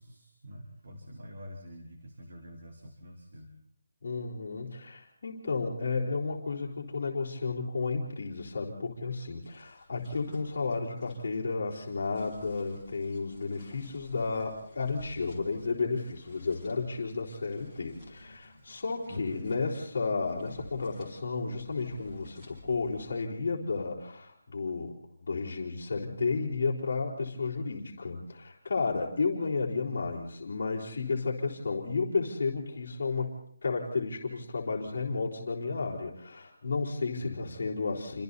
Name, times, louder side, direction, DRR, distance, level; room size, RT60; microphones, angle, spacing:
voice 1, 0.0-3.5 19.1-19.4 37.2-37.6, left 1 dB, 45° right, 1 dB, 4.0 m, -46 dB
voice 2, 4.0-33.3 33.6-38.2, left 4 dB, 35° left, -6 dB, 4.2 m, -32 dB
sound 1, 8.7-23.2, left 1 dB, 5° right, 6.6 m, -54 dB
28.5 x 26.0 x 4.2 m, 0.63 s
hypercardioid pair, 180°, 0 cm